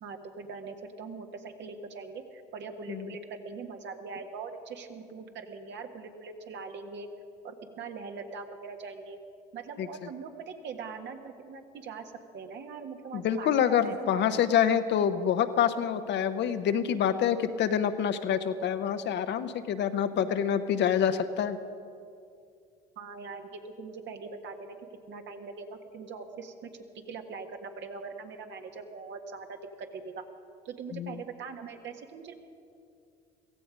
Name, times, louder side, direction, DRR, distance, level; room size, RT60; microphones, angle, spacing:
voice 1, 0.0-7.1 7.4-9.2 9.5-14.3 23.0-24.8 25.1-26.7 27.1-30.2 30.7-32.3, right 4 dB, 60° right, 4 dB, 1.6 m, -42 dB
voice 2, 13.1-21.6 30.9-31.1, left 8 dB, 60° left, 10 dB, 1.0 m, -26 dB
16.0 x 15.5 x 5.2 m, 2.4 s
hypercardioid pair, 65°, 21 cm